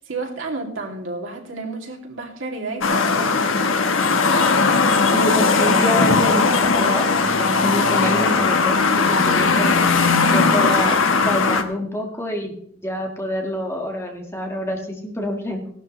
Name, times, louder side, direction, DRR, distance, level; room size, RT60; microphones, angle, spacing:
voice 1, 0.0-3.9 4.8-5.1 8.0-8.2, right 3 dB, 75° right, 0 dB, 2.7 m, -32 dB
sound 1, 2.8-11.6, left 4 dB, 85° left, 1.2 m, -18 dB
voice 2, 5.1-15.7, left 1 dB, 15° left, 2 dB, 1.8 m, -27 dB
17.0 x 12.0 x 3.2 m, 0.67 s
head